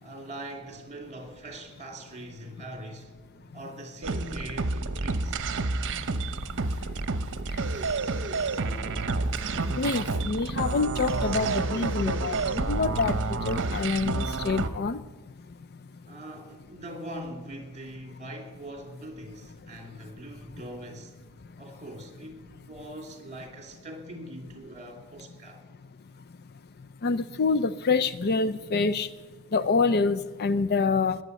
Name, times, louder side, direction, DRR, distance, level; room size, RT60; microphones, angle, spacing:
voice 1, 0.0-3.2 3.5-5.4 16.1-21.2 21.6-25.6, right 1 dB, 35° right, 2.8 m, -42 dB
sound 1, 4.0-14.7, right 3 dB, 60° right, 0.9 m, -29 dB
voice 2, 9.8-15.0 27.0-29.1 29.5-31.2, left 4 dB, 50° left, 0.5 m, -26 dB
20.5 x 8.6 x 8.1 m
head